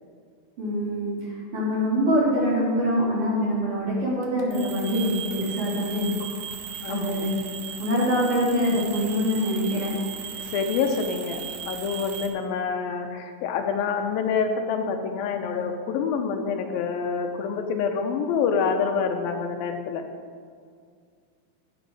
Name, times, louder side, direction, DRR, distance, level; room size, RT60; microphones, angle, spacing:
voice 1, 0.6-6.1 6.9-7.5 7.8-9.9, equal, 40° right, -7 dB, 3.8 m, -24 dB
sound 1, 4.2-12.3, right 8 dB, 70° right, 2.4 m, -37 dB
voice 2, 6.8-7.3 10.5-20.1, left 6 dB, 80° left, 5 dB, 2.5 m, -27 dB
10.5 x 10.5 x 4.7 m, 2.1 s
omnidirectional pair, 4.2 m